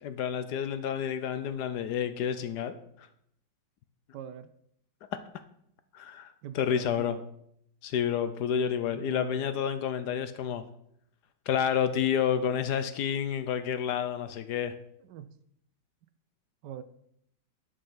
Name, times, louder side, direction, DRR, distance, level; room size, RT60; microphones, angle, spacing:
voice 1, 0.0-2.7 5.9-7.2 7.8-10.6 11.5-14.7, left 8 dB, 70° left, 11 dB, 1.1 m, -29 dB
voice 2, 4.1-4.5 6.4-7.3 8.9-9.8 15.1-15.3 16.6-16.8, right 10 dB, 75° right, 12 dB, 1.2 m, -43 dB
10.0 x 5.5 x 5.6 m, 0.72 s
omnidirectional pair, 2.0 m